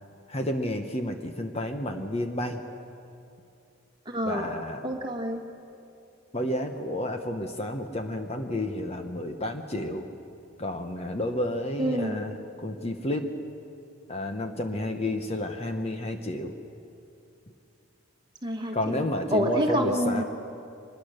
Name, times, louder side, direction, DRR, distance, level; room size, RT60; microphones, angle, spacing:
voice 1, 0.3-2.6 4.2-4.9 6.3-10.1 10.6-13.3 14.1-16.5 18.7-20.2, left 1 dB, 30° left, 5 dB, 1.0 m, -31 dB
voice 2, 4.1-4.5 4.8-5.4 11.8-12.2 18.4-19.0 19.3-20.2, equal, 20° right, 2 dB, 1.8 m, -27 dB
24.5 x 21.0 x 6.5 m, 2.6 s
head